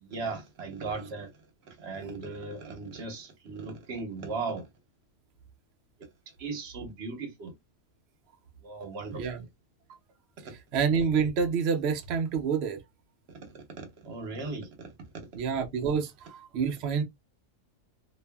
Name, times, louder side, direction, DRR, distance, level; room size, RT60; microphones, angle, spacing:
voice 1, 0.0-1.3 1.7-4.7 6.4-7.5 8.6-9.5 13.3-13.4 13.8-14.9, right 4 dB, 50° right, 0.9 m, -37 dB
voice 2, 10.7-12.8 15.3-17.0, right 6 dB, 70° right, 0.6 m, -28 dB
2.6 x 2.4 x 2.2 m
omnidirectional pair, 1.7 m